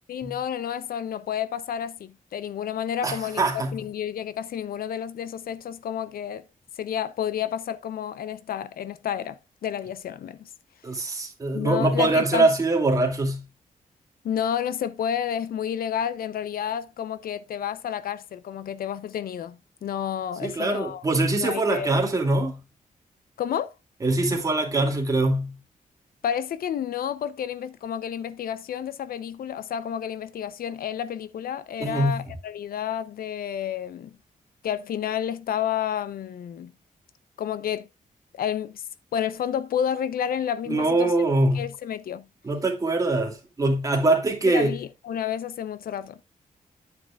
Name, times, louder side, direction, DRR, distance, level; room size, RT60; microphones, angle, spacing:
voice 1, 0.1-6.4 6.8-10.5 11.5-12.5 14.2-21.0 21.4-21.9 23.4-23.7 26.2-34.2 34.6-36.7 37.4-37.9 38.4-38.8 39.1-41.1 41.5-42.3 44.4-46.2, left 9 dB, 90° left, 0.6 m, -30 dB
voice 2, 3.0-3.8 10.8-13.4 20.4-22.6 24.0-25.6 31.8-32.2 40.7-41.7 42.4-44.8, right 2 dB, 25° right, 2.7 m, -23 dB
10.0 x 9.0 x 2.4 m
wide cardioid pair, 160°, 15 cm